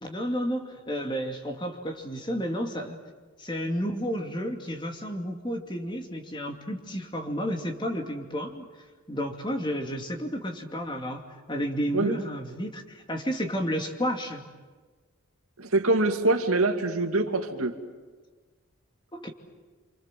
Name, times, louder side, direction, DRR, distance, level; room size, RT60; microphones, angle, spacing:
voice 1, 0.0-3.0 3.4-8.6 9.1-14.5 19.1-19.3, equal, 20° left, 3 dB, 2.6 m, -31 dB
voice 2, 15.6-17.8, right 2 dB, 85° right, 5 dB, 2.5 m, -24 dB
29.0 x 26.5 x 7.6 m, 1.4 s
head